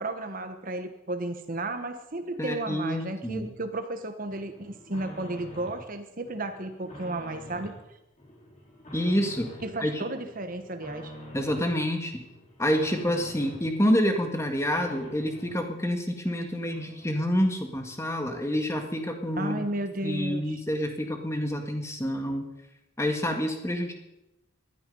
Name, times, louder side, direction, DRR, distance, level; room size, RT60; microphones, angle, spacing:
voice 1, 0.0-7.8 9.6-11.1 19.4-20.6, right 2 dB, 40° right, 8 dB, 1.2 m, -33 dB
voice 2, 2.4-3.5 8.9-9.5 9.8-10.0 11.3-12.1 12.6-19.7 20.0-22.5 23.0-23.9, equal, 15° left, 4 dB, 1.7 m, -28 dB
sound 1, 4.2-5.9 6.2-7.8 8.2-9.8 10.1-11.7 12.1-13.7 14.1-15.6 16.1-16.2 16.4-16.5 16.7-17.6 17.9-18.0, equal, 35° left, 4.6 m, -46 dB
19.5 x 13.0 x 5.5 m, 0.91 s
head